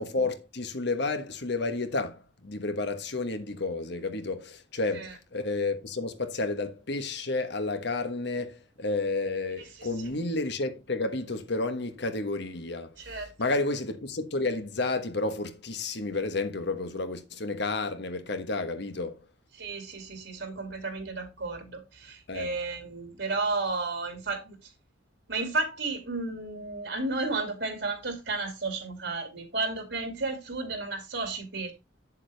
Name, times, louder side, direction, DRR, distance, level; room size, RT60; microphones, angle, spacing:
voice 1, 0.0-12.9 13.4-19.2 22.3-22.5, left 3 dB, 60° left, 1.3 m, -31 dB
voice 2, 9.6-9.9 13.0-13.3 19.5-24.7 25.3-31.7, right 3 dB, 70° right, 2.5 m, -33 dB
8.3 x 7.3 x 3.3 m
head